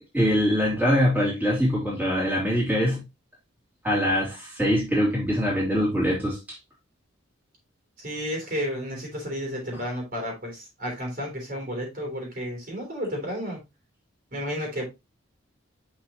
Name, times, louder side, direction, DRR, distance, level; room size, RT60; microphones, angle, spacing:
voice 1, 0.1-3.0 3.8-6.4, equal, 5° right, 2.9 m, -23 dB
voice 2, 8.0-13.6 14.3-14.9, equal, 45° right, 3.2 m, -32 dB
6.4 x 5.9 x 2.9 m
head